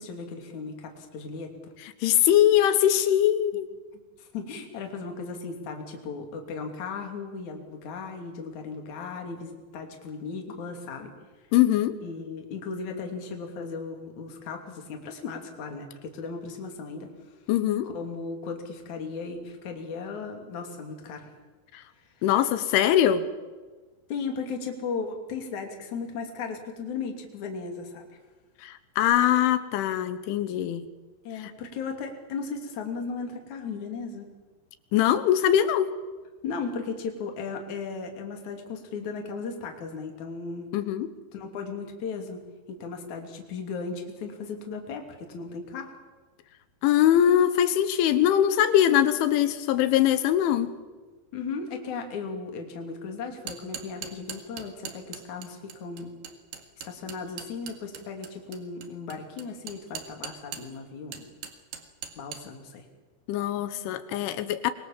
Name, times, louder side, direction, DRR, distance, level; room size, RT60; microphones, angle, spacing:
voice 1, 0.0-1.7 4.2-11.1 12.0-17.1 17.8-21.3 24.1-28.1 31.2-34.3 36.4-40.7 41.3-42.4 42.7-45.9 51.3-56.2 56.8-61.3 62.2-62.9, left 4 dB, 45° left, 3 dB, 3.8 m, -36 dB
voice 2, 2.0-3.7 11.5-12.0 17.5-17.9 21.7-21.8 22.2-23.3 28.6-30.9 34.9-36.0 40.7-41.1 46.8-50.7 63.3-64.7, left 11 dB, 80° left, 12 dB, 3.5 m, -22 dB
sound 1, 53.3-60.8 61.1-62.4, right 8 dB, 65° right, 3.7 m, -40 dB
25.5 x 22.5 x 7.5 m, 1.3 s
omnidirectional pair, 5.5 m